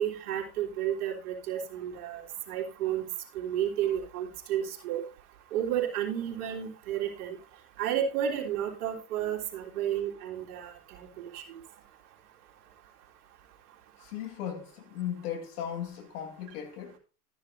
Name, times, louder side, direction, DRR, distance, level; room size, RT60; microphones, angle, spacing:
voice 1, 0.0-3.1 3.3-5.0 5.5-7.4 7.8-10.7 11.0-11.1 11.3-11.4, right 10 dB, 65° right, 3.3 m, -31 dB
voice 2, 14.0-17.0, left 9 dB, 70° left, 2.5 m, -37 dB
13.0 x 10.5 x 2.6 m
hypercardioid pair, 100°, 47 cm